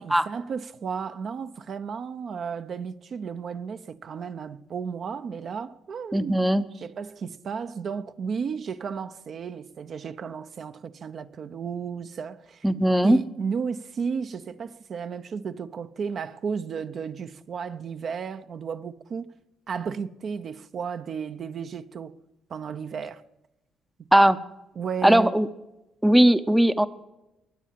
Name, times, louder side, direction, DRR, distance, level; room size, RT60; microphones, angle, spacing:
voice 1, 0.0-6.4 6.7-12.7 13.0-19.3 19.7-22.1 22.5-23.2 24.8-25.3, right 6 dB, 50° right, 0.8 m, -33 dB
voice 2, 6.1-6.6 12.6-13.2 24.1-24.4 25.0-25.5 26.0-26.9, right 1 dB, 5° right, 0.7 m, -18 dB
22.5 x 8.5 x 7.5 m
cardioid pair, 105°, 0 cm